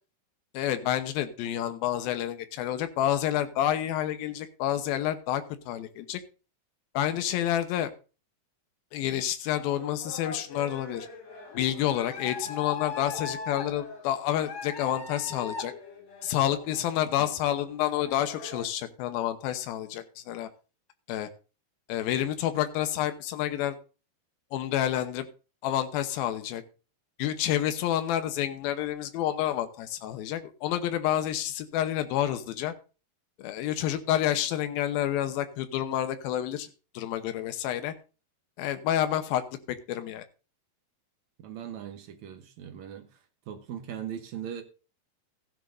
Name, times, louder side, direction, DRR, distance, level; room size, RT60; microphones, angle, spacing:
voice 1, 0.5-6.2 6.9-7.9 8.9-11.1 11.5-15.7 16.2-20.5 21.1-21.3 21.9-23.8 24.5-25.3 25.6-26.6 27.2-32.7 33.4-36.7 36.9-37.9 38.6-39.4 39.7-40.2, left 11 dB, 80° left, 2.7 m, -29 dB
sound 1, 9.5-18.7, left 5 dB, 45° left, 2.6 m, -40 dB
voice 2, 41.4-43.1 43.5-44.6, right 9 dB, 70° right, 1.8 m, -39 dB
15.5 x 10.0 x 2.6 m
omnidirectional pair, 4.5 m